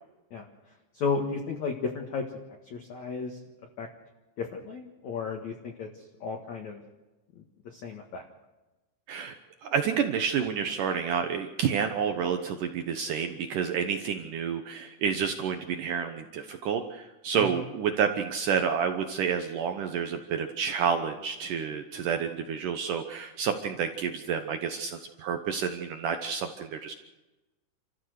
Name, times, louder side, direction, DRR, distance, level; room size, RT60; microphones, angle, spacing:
voice 1, 0.9-2.2 2.6-3.4 3.8-3.9 4.4-6.8 7.4-8.2 17.3-17.6, left 5 dB, 55° left, 2 dB, 2.2 m, -34 dB
voice 2, 9.6-26.9, right 7 dB, 85° right, 6 dB, 1.8 m, -29 dB
29.0 x 14.5 x 6.6 m, 1.1 s
omnidirectional pair, 5.3 m